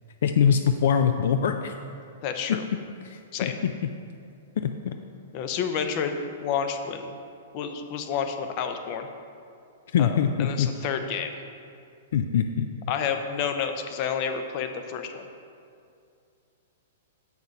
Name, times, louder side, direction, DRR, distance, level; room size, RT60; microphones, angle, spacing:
voice 1, 0.2-1.8 2.5-2.6 3.0-3.7 4.6-5.0 9.9-10.7 12.1-12.7, left 7 dB, 70° left, 7 dB, 0.4 m, -23 dB
voice 2, 2.2-2.6 3.3-3.6 5.3-6.1 6.4-7.2 7.5-9.1 10.0-11.3 12.9-15.3, left 7 dB, 40° left, 7 dB, 0.7 m, -30 dB
7.3 x 5.9 x 5.4 m, 2.4 s
hypercardioid pair, 145°, 0 cm